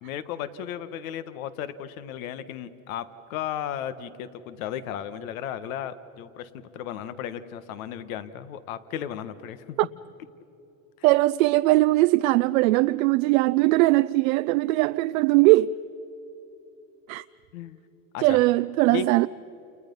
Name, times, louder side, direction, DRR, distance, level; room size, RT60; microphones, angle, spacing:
voice 1, 0.0-3.0 3.3-9.8 11.0-11.2 17.5-17.8 18.1-18.4 18.9-19.1, left 9 dB, 80° left, 1.5 m, -35 dB
voice 2, 11.0-15.7 17.1-17.2 18.2-19.3, right 19 dB, 80° right, 0.6 m, -20 dB
29.5 x 29.5 x 5.5 m
supercardioid pair, 105°, 40 cm